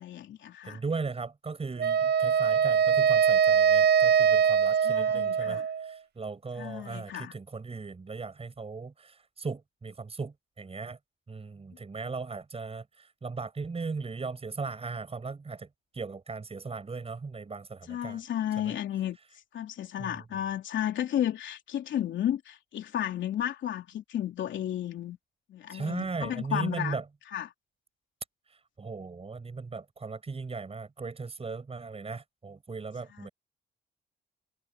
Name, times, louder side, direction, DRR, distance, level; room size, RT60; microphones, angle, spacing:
voice 1, 0.0-0.8 4.8-5.7 6.6-7.3 17.9-19.2 19.5-25.2 25.5-27.0 27.3-27.5 33.1-33.3, left 11 dB, 70° left, 3.3 m, -33 dB
voice 2, 0.6-11.0 11.3-15.7 15.9-18.2 18.6-18.7 20.0-20.1 25.7-27.0 28.5-33.3, right 4 dB, 30° right, 7.2 m, -38 dB
Wind instrument woodwind instrument, 1.8-5.9, right 7 dB, 55° right, 0.9 m, -23 dB
cardioid pair, 90°, 20 cm